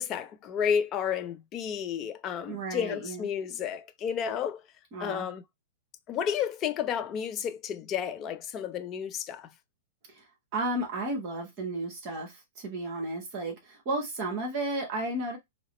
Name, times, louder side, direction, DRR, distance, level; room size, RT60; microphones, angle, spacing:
voice 1, 0.0-4.6 5.0-5.4 6.1-9.5, left 8 dB, 30° left, 0.5 m, -31 dB
voice 2, 2.5-3.3 4.9-5.3 10.1-10.3 10.5-15.4, right 2 dB, 45° right, 1.2 m, -33 dB
3.6 x 2.0 x 3.0 m
hypercardioid pair, 125°, 0 cm